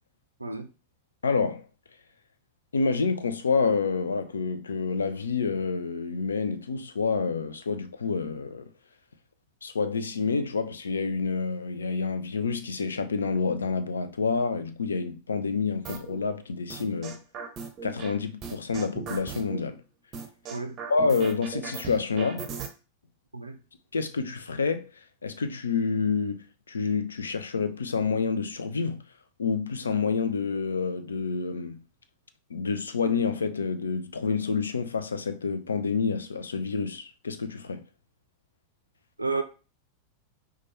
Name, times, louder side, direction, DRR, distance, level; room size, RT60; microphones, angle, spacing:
voice 1, 0.4-0.7 20.5-20.8 23.3-23.6 39.2-39.4, right 3 dB, 85° right, 0.4 m, -31 dB
voice 2, 1.2-1.7 2.7-8.7 9.6-17.2 17.8-19.8 20.9-22.5 23.9-29.0 29.4-31.8 32.5-37.9, left 4 dB, 70° left, 0.4 m, -28 dB
sound 1, 15.8-16.2 16.7-18.1 18.4-19.6 20.1-22.7, right 6 dB, 30° right, 0.6 m, -37 dB
4.4 x 2.3 x 3.0 m
figure-of-eight pair, 90°, 0 cm